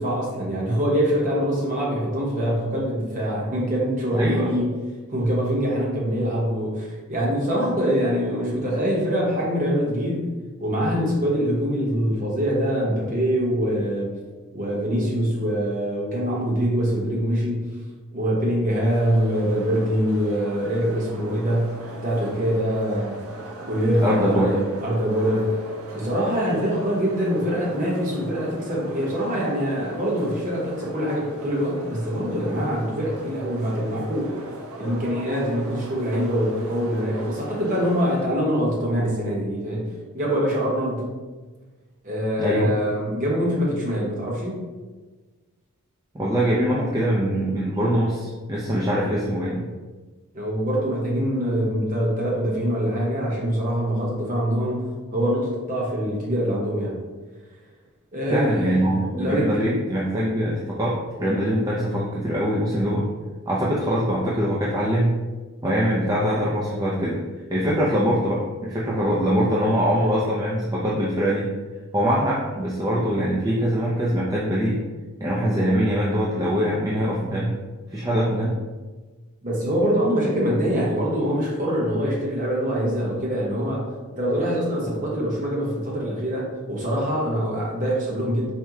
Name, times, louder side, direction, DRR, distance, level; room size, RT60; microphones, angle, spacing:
voice 1, 0.0-4.7 5.1-10.3 10.6-14.1 14.5-17.7 18.1-23.2 23.6-25.6 25.9-34.4 34.8-41.1 42.0-44.6 50.3-57.0 58.1-59.6 79.4-88.5, equal, 35° right, -4 dB, 0.9 m, -24 dB
voice 2, 4.1-4.5 24.0-24.6 42.4-42.7 46.1-49.7 58.3-63.1 63.5-65.2 65.6-67.2 67.5-71.5 71.9-74.8 75.2-77.6 77.9-78.6, equal, 15° right, -6 dB, 0.4 m, -23 dB
sound 1, 18.8-38.3, right 2 dB, 75° right, 0.6 m, -40 dB
4.4 x 2.1 x 3.6 m, 1.3 s
head